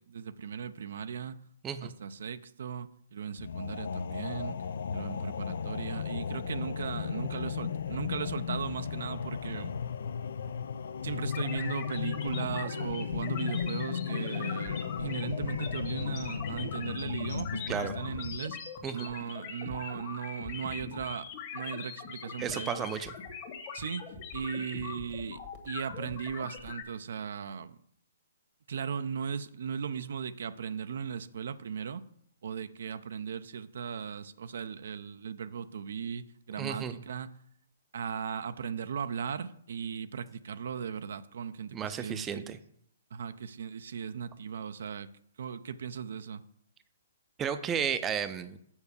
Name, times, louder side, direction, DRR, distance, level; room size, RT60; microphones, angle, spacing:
voice 1, 0.0-1.4 1.8-4.6 4.9-9.7 11.0-18.6 18.9-22.9 23.7-24.0 24.3-25.4 25.6-27.8 28.7-32.0 32.4-37.3 37.9-42.6 43.1-45.1 45.4-46.4, right 7 dB, 65° right, 12 dB, 0.4 m, -37 dB
sound 1, 3.4-18.4, left 7 dB, 70° left, 0.4 m, -35 dB
sound 2, 11.3-26.8, left 6 dB, 35° left, 1.5 m, -42 dB
voice 2, 22.4-23.1 36.6-37.0 41.7-42.6 47.4-48.6, right 7 dB, 15° right, 10 dB, 0.5 m, -33 dB
7.1 x 4.5 x 6.7 m, 0.68 s
hypercardioid pair, 145°, 0 cm